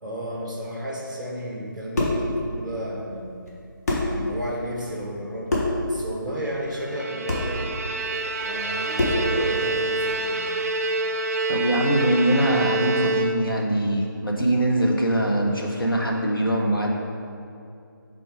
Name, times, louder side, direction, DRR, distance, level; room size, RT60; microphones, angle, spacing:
voice 1, 0.0-3.3 4.0-7.7 8.4-10.4, equal, ahead, -4 dB, 0.6 m, -33 dB
sound 1, 1.7-2.3 3.5-3.6 3.9-4.2 5.5-5.8 7.3-7.5 9.0-9.3, left 2 dB, 45° left, 1.3 m, -24 dB
Bowed string instrument, 6.7-13.7, right 2 dB, 40° right, 0.4 m, -27 dB
voice 2, 11.5-16.9, right 1 dB, 85° left, -1 dB, 1.1 m, -22 dB
5.9 x 3.8 x 5.0 m, 2.5 s
figure-of-eight pair, 155°, 12 cm